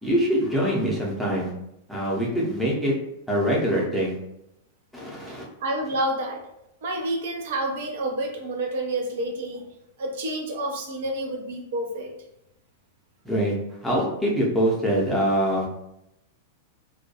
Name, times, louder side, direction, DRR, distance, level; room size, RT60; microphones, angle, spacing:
voice 1, 0.0-1.5 1.9-2.9 3.3-4.1 4.9-5.5 13.2-13.5 13.8-15.7, equal, ahead, -5 dB, 0.7 m, -24 dB
voice 2, 5.3-6.4 6.8-9.7 10.0-12.1, right 1 dB, 55° right, 2 dB, 0.5 m, -29 dB
2.2 x 2.2 x 2.8 m, 0.84 s
figure-of-eight pair, 95°, 0 cm